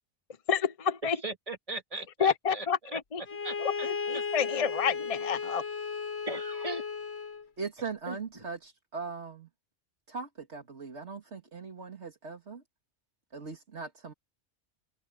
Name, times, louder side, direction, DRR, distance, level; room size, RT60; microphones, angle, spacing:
voice 1, 0.5-1.2 2.2-3.2 3.6-5.6, left 7 dB, 35° left, 0.7 m, -29 dB
voice 2, 1.2-3.9 4.1-4.2 4.5-4.6 6.3-6.8 8.1-8.4, right 2 dB, 30° right, 2.3 m, -39 dB
Bowed string instrument, 3.3-7.5, left 5 dB, 65° left, 1.5 m, -35 dB
voice 3, 7.6-9.5 10.1-12.6 13.3-14.1, right 5 dB, 75° right, 2.4 m, -40 dB
omnidirectional pair, 1.2 m